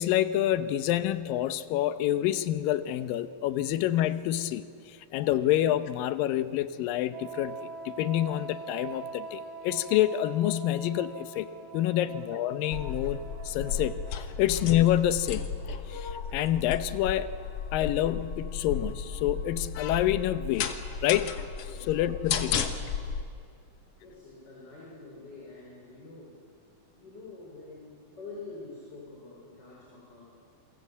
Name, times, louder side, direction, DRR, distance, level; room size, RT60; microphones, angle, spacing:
voice 1, 0.0-7.6 7.9-11.5 11.7-14.0 14.4-15.5 15.9-17.3 17.7-20.7 21.0-21.3 21.9-22.7, left 12 dB, 85° left, 12 dB, 2.5 m, -27 dB
Wind instrument woodwind instrument, 7.1-14.4, right 5 dB, 70° right, 2.0 m, -43 dB
sound 1, 12.7-23.2, left 6 dB, 60° left, 1.9 m, -34 dB
voice 2, 24.0-26.3 27.0-30.2, left 3 dB, 30° left, -4 dB, 5.3 m, -46 dB
28.0 x 21.5 x 8.3 m, 2.5 s
omnidirectional pair, 3.9 m